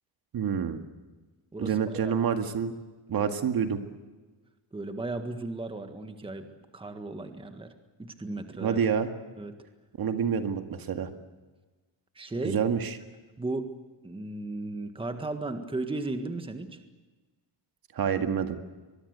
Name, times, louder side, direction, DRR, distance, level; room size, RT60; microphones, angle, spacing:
voice 1, 0.3-0.8 1.6-2.7 3.1-3.8 8.6-9.1 10.0-11.1 12.4-12.9 17.9-18.6, right 7 dB, 50° right, 7 dB, 2.0 m, -27 dB
voice 2, 1.5-2.1 4.7-6.5 6.7-7.7 8.0-8.8 9.4-9.5 12.1-12.6 13.4-13.7 14.0-16.8, right 2 dB, 10° right, 7 dB, 1.7 m, -35 dB
24.0 x 22.0 x 8.2 m, 1.3 s
cardioid pair, 145°, 45 cm